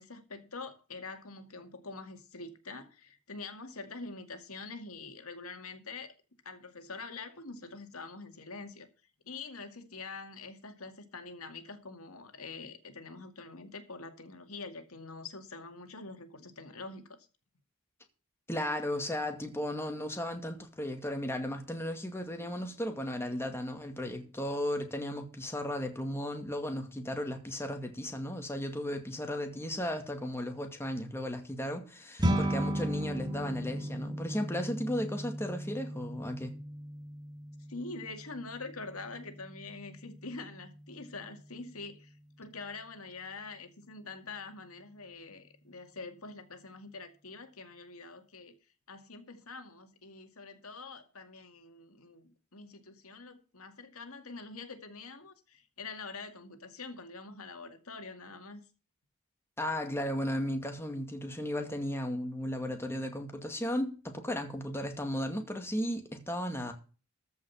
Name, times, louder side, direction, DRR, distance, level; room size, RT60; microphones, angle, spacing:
voice 1, 0.0-6.1 6.4-8.9 9.3-17.2 37.6-48.6 48.9-58.6, left 3 dB, 75° left, 2.2 m, -45 dB
voice 2, 18.5-36.6 59.6-66.7, left 1 dB, 10° left, 2.1 m, -35 dB
sound 1, 32.2-41.7, right 1 dB, 20° right, 1.5 m, -36 dB
14.0 x 5.6 x 7.1 m
head